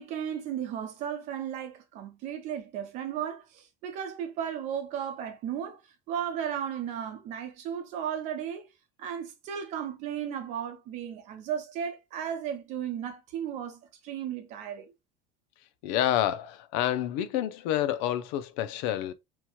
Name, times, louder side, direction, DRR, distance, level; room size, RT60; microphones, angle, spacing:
voice 1, 0.0-5.8 6.1-8.7 9.0-14.9, right 9 dB, 50° right, 0.8 m, -35 dB
voice 2, 15.8-19.1, left 12 dB, 70° left, 0.5 m, -28 dB
3.0 x 2.2 x 2.8 m
cardioid pair, 160°, 16 cm